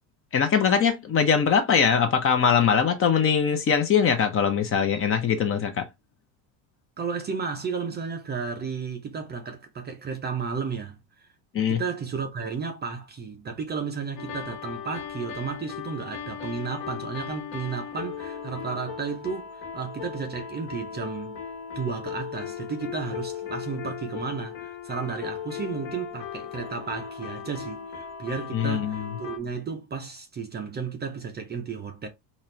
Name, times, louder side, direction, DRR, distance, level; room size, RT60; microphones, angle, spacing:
voice 1, 0.3-5.9 11.5-11.8 28.5-29.0, left 7 dB, 30° left, 0.7 m, -22 dB
voice 2, 7.0-11.3 11.7-21.4 21.8-32.1, right 5 dB, 25° right, 0.5 m, -33 dB
sound 1, 14.2-29.4, left 8 dB, 50° left, 1.3 m, -37 dB
4.2 x 2.5 x 3.1 m
cardioid pair, 135°, 45 cm